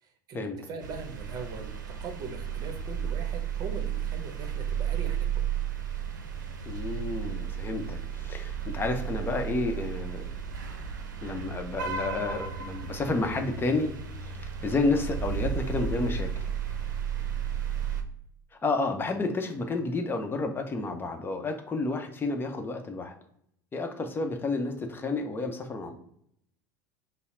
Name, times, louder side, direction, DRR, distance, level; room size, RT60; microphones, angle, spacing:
voice 1, 0.0-5.4, right 3 dB, 40° right, 4 dB, 0.9 m, -41 dB
sound 1, 0.8-18.0, right 8 dB, 90° right, 0.5 m, -33 dB
voice 2, 6.7-10.3 11.2-13.9 14.2-16.4 18.6-23.1 23.7-26.0, left 3 dB, 20° left, 5 dB, 0.7 m, -30 dB
5.5 x 2.0 x 2.6 m, 0.71 s
hypercardioid pair, 95°, 10 cm